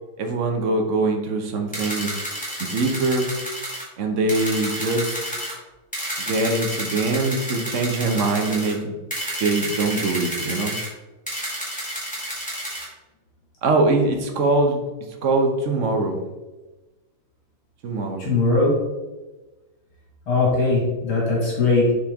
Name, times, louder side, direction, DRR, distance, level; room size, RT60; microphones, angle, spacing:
voice 1, 0.2-2.1 2.6-3.3 4.0-5.2 6.2-9.0 9.4-10.8 13.6-14.8 15.2-16.2 17.8-18.3, right 2 dB, 65° right, 3 dB, 0.7 m, -22 dB
sound 1, 1.7-3.8 4.3-5.5 5.9-8.7 9.1-10.9 11.3-12.9, equal, 5° left, 1.9 m, -30 dB
voice 2, 18.2-18.8 20.3-21.9, left 3 dB, 70° left, -4 dB, 2.5 m, -20 dB
7.3 x 4.4 x 3.5 m, 1.1 s
omnidirectional pair, 2.4 m